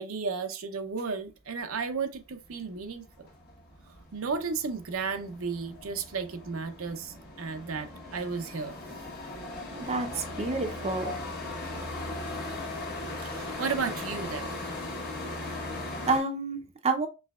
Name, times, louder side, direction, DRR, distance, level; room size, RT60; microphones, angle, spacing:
voice 1, 0.0-3.0 4.1-8.8 13.2-14.5, right 5 dB, 70° right, 0.6 m, -33 dB
sound 1, 1.9-2.0 2.3-16.2, left 2 dB, 50° left, 1.3 m, -39 dB
voice 2, 9.7-11.2 16.1-17.1, right 3 dB, 30° right, 0.6 m, -29 dB
5.5 x 3.2 x 2.4 m
head